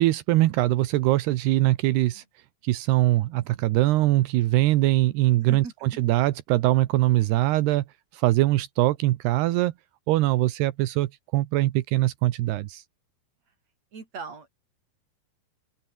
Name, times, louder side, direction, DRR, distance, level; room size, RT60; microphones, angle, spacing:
voice 1, 0.0-2.2 2.6-7.8 8.1-9.7 10.1-12.8, right 16 dB, 80° right, 3.0 m, -22 dB
voice 2, 1.9-2.2 5.3-5.7 13.9-14.5, right 4 dB, 40° right, 6.1 m, -40 dB
open air
omnidirectional pair, 4.6 m